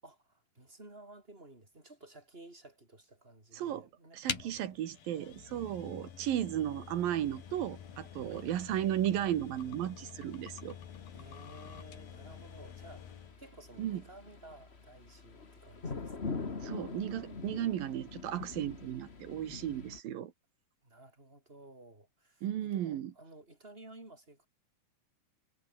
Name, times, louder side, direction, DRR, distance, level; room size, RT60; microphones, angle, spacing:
voice 1, 0.0-4.5 5.1-5.8 8.3-8.8 11.1-16.4 17.5-18.0 20.8-24.5, right 2 dB, 15° right, 6.7 m, -55 dB
voice 2, 3.5-3.9 4.1-10.8 13.8-14.0 16.6-20.3 22.4-23.1, right 11 dB, 85° right, 3.4 m, -35 dB
sound 1, 4.3-13.4, left 9 dB, 90° left, 4.4 m, -46 dB
sound 2, 7.2-9.1 10.5-20.0, left 4 dB, 25° left, 1.4 m, -45 dB
omnidirectional pair, 4.0 m